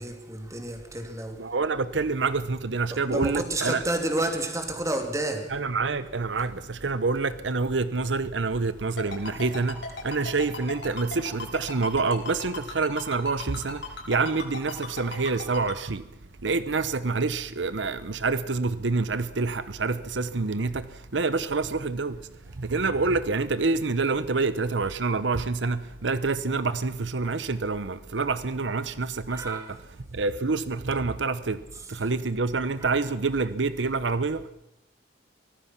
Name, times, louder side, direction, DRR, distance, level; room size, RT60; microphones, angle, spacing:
voice 1, 0.0-1.5 2.9-5.5 29.3-29.7 32.8-32.9, right 1 dB, 15° right, 2.9 m, -30 dB
voice 2, 1.4-3.8 5.5-16.1 16.4-29.8 30.1-31.6 31.9-34.5, right 4 dB, 85° right, 0.9 m, -27 dB
Ringtone, 9.0-15.7, left 3 dB, 80° left, 6.6 m, -36 dB
24.5 x 18.5 x 6.0 m
head